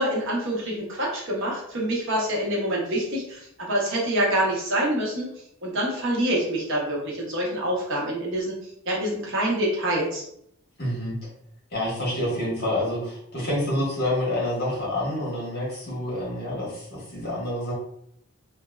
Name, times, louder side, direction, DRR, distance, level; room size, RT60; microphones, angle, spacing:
voice 1, 0.0-5.3 5.6-8.5 8.9-10.2, right 1 dB, 55° right, -3 dB, 0.8 m, -26 dB
voice 2, 10.8-11.1 11.7-17.7, left 1 dB, 45° left, -6 dB, 1.4 m, -28 dB
3.0 x 2.5 x 2.3 m, 0.71 s
head